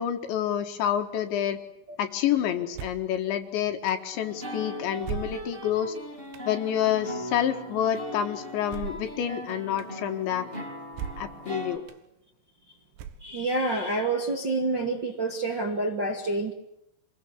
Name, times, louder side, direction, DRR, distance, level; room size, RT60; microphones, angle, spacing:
voice 1, 0.0-1.6 2.0-6.0 6.5-10.5 11.2-11.8, left 10 dB, 70° left, 6 dB, 3.6 m, -28 dB
sound 1, 2.7-3.1 3.9-4.0 5.0-5.7 6.3-6.5 8.7-9.1 9.8-9.9 10.9-11.4 11.9-12.0 13.0-13.5, right 8 dB, 65° right, 3.4 m, -37 dB
sound 2, 4.1-11.8, equal, 10° right, 5.7 m, -39 dB
voice 2, 13.2-16.5, right 2 dB, 35° right, 1 dB, 1.9 m, -28 dB
27.0 x 22.0 x 8.2 m, 0.84 s
omnidirectional pair, 5.8 m